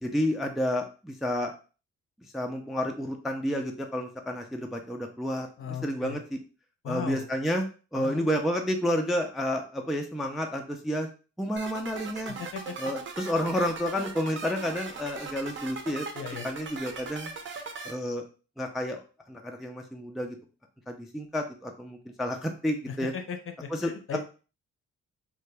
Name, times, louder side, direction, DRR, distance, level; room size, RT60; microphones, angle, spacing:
voice 1, 0.0-1.5 2.3-6.4 6.9-7.7 7.9-11.1 11.4-12.3 12.8-16.1 16.4-17.3 17.8-18.2 18.6-19.0 19.3-20.4 20.9-23.1 23.7-23.9, equal, ahead, 3 dB, 0.4 m, -30 dB
voice 2, 5.6-6.2 6.8-7.2 8.0-8.2 12.4-12.8 16.1-16.5 22.9-24.2, left 7 dB, 45° left, 6 dB, 0.6 m, -37 dB
sound 1, 11.6-17.9, right 4 dB, 40° right, 0.7 m, -39 dB
2.8 x 2.2 x 3.3 m, 0.35 s
cardioid pair, 90°, 30 cm